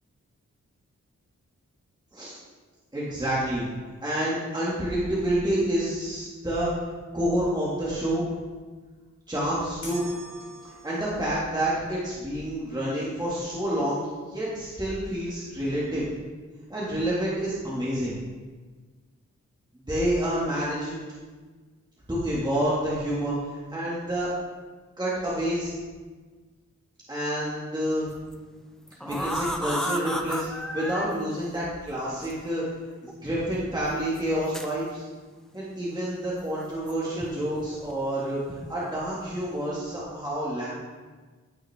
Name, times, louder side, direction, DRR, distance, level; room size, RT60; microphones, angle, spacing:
voice 1, 2.9-3.6 4.0-6.8 7.1-8.3 9.3-10.1 10.6-16.0 16.7-18.1 19.9-21.0 22.1-24.3 25.0-25.7 27.1-28.1 29.0-32.6 33.0-35.0 35.5-38.4 38.7-40.7, right 1 dB, 15° right, -8 dB, 2.5 m, -28 dB
sound 1, 9.8-11.3, left 1 dB, 70° left, 3.2 m, -40 dB
sound 2, 28.1-28.3 28.9-31.1 32.2-32.3 33.1-33.2 34.1-34.7 36.6-37.3 37.6-37.9 38.5-38.7 39.1-39.5, equal, ahead, 0.8 m, -33 dB
15.0 x 5.9 x 3.8 m, 1.4 s
wide cardioid pair, 90°, 29 cm